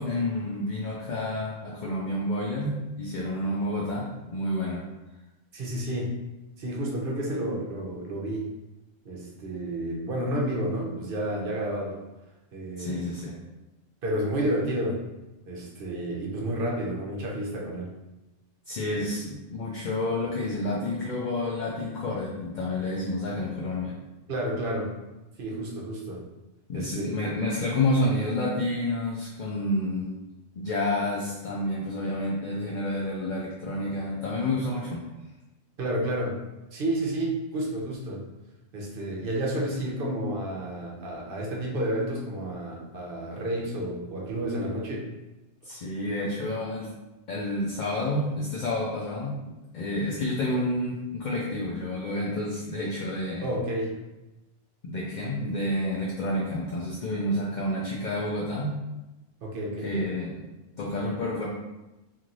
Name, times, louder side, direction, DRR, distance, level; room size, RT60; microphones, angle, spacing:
voice 1, 0.0-4.8 12.8-13.3 18.7-23.9 26.7-30.1 30.6-35.0 45.6-46.9 47.3-53.5 54.8-58.8 59.8-60.3 60.8-61.4, left 1 dB, 60° left, -5 dB, 0.5 m, -29 dB
voice 2, 5.5-6.1 6.6-8.5 9.0-12.0 12.5-13.0 14.0-15.0 15.5-17.9 24.3-24.9 25.4-26.2 26.7-27.1 35.8-36.4 36.7-38.2 38.7-45.1 53.4-53.9 59.4-60.0, right 1 dB, 55° right, -3 dB, 0.8 m, -30 dB
3.0 x 2.6 x 2.5 m, 1.0 s
omnidirectional pair, 1.2 m